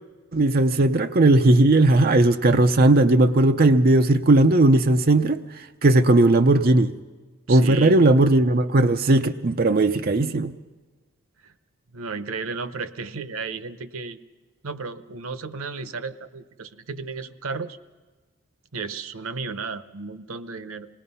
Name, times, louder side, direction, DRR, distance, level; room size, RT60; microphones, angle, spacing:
voice 1, 0.3-5.4 5.8-6.9 7.5-10.5, right 2 dB, 45° right, 7 dB, 0.6 m, -17 dB
voice 2, 7.5-8.0 11.4-11.5 11.9-14.2 14.6-17.8 18.7-20.9, right 4 dB, 90° right, 13 dB, 0.8 m, -33 dB
26.5 x 19.5 x 5.5 m, 1.3 s
head